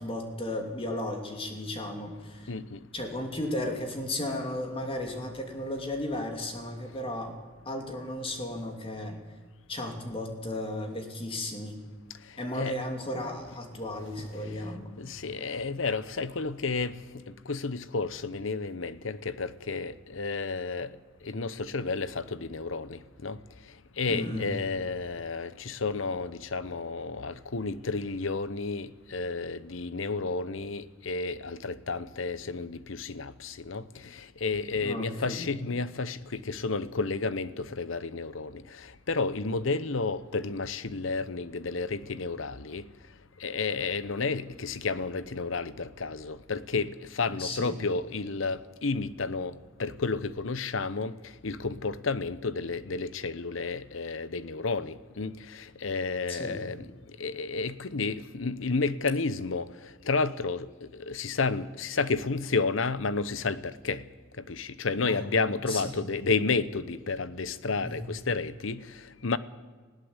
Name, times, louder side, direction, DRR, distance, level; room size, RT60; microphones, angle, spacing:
voice 1, 0.0-2.5 2.9-7.4 7.6-9.2 9.7-11.8 12.4-14.9 24.1-24.5 34.8-35.5 47.3-47.8 56.3-56.6 65.0-65.3 65.7-65.8 67.8-68.0, left 1 dB, 30° left, 2.9 m, -34 dB
voice 2, 2.5-2.8 12.5-12.8 14.2-17.0 17.3-20.9 21.2-23.4 24.0-42.9 43.4-49.5 49.8-56.9 57.2-64.0 64.4-69.4, left 4 dB, 70° left, 0.9 m, -31 dB
19.5 x 16.5 x 8.2 m
head